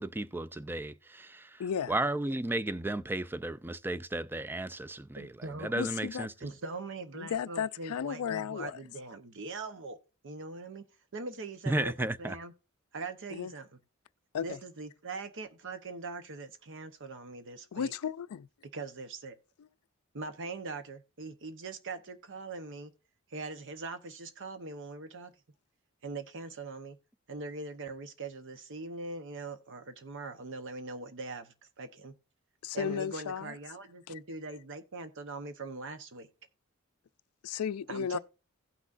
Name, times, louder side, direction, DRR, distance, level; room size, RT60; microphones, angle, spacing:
voice 1, 0.0-1.6 1.9-5.3 5.6-6.3 11.7-12.4, right 1 dB, 10° right, 0.4 m, -34 dB
voice 2, 1.6-2.0 5.7-6.3 7.1-8.8 13.3-13.5 14.3-14.6 17.7-18.5 32.6-33.6 37.4-38.2, left 7 dB, 85° left, 0.4 m, -34 dB
voice 3, 5.2-5.7 6.4-10.0 10.2-10.8 11.1-12.5 12.9-13.7 14.4-17.9 18.7-19.4 20.1-22.9 23.3-25.3 26.0-27.0 27.3-32.1 32.7-36.3 37.9-38.2, right 3 dB, 60° right, 0.8 m, -41 dB
16.5 x 6.0 x 2.5 m
head